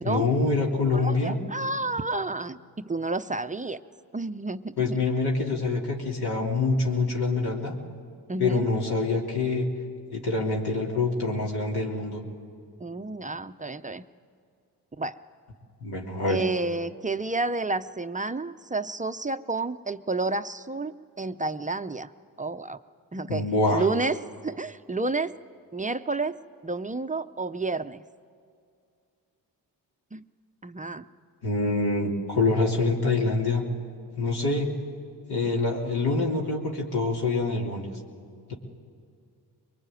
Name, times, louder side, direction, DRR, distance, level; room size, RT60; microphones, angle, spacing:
voice 1, 0.0-1.4 4.8-7.8 8.4-9.7 10.1-12.2 15.8-16.4 23.3-23.9 31.4-33.6 34.2-34.7 35.3-37.9, left 3 dB, 65° left, -2 dB, 3.2 m, -25 dB
voice 2, 0.9-3.8 4.1-5.0 8.3-8.7 12.8-14.0 15.0-15.2 16.3-22.1 22.4-22.8 23.1-23.5 23.7-25.3 25.7-26.4 26.6-28.0 30.1-30.2 30.6-31.1, right 3 dB, 20° right, 10 dB, 0.7 m, -30 dB
23.0 x 21.0 x 9.1 m, 2.3 s
cardioid pair, 60°, 41 cm